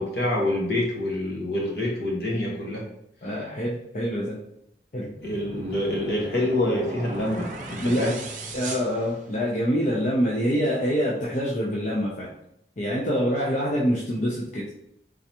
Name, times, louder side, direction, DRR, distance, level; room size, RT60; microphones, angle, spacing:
voice 1, 0.0-2.8 5.2-8.2, left 1 dB, 65° left, -2 dB, 1.2 m, -26 dB
voice 2, 3.2-4.4 4.9-5.1 7.8-8.1 8.5-12.3 12.8-14.6, equal, 45° left, -5 dB, 0.6 m, -25 dB
sound 1, 5.1-9.7, right 1 dB, 45° right, 0.6 m, -37 dB
3.7 x 3.4 x 2.9 m, 0.75 s
head